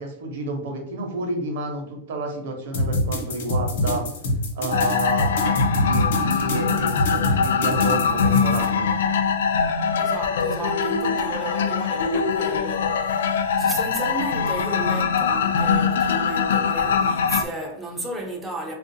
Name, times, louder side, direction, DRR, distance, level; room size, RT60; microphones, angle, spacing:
voice 1, 0.0-4.1 4.5-8.9, right 2 dB, 55° right, 0.8 m, -30 dB
sound 1, 2.7-8.7, left 1 dB, 60° left, 0.9 m, -25 dB
sound 2, 4.7-17.4, left 6 dB, 85° left, 0.3 m, -22 dB
voice 2, 10.0-18.7, right 1 dB, 5° right, 0.4 m, -33 dB
3.6 x 2.4 x 2.6 m
supercardioid pair, 180°, 0 cm